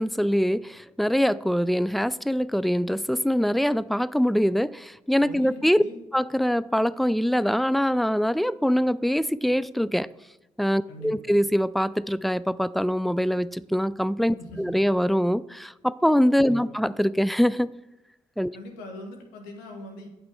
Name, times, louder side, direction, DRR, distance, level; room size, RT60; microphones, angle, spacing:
voice 1, 0.0-5.8 6.1-10.1 10.6-17.7 18.4-18.5, equal, ahead, 0.3 m, -23 dB
voice 2, 5.2-6.0 10.9-11.2 14.4-14.6 16.5-16.8 18.5-20.1, left 1 dB, 85° left, 1.4 m, -41 dB
8.7 x 5.9 x 4.9 m
hypercardioid pair, 40°, 16 cm